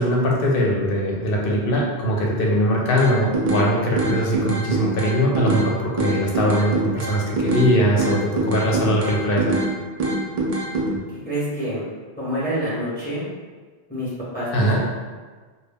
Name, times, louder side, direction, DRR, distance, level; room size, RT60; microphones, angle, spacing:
voice 1, 0.0-8.2 8.5-9.5 14.5-14.8, equal, 60° left, -2 dB, 0.7 m, -21 dB
sound 1, 3.0-3.7 4.0-5.7 6.0-7.7 8.0-9.7 10.0-10.9, right 2 dB, 60° right, 0.4 m, -24 dB
voice 2, 11.2-11.8 12.2-13.2 13.9-14.8, equal, 10° left, -10 dB, 0.7 m, -27 dB
2.2 x 2.0 x 3.3 m, 1.4 s
omnidirectional pair, 1.1 m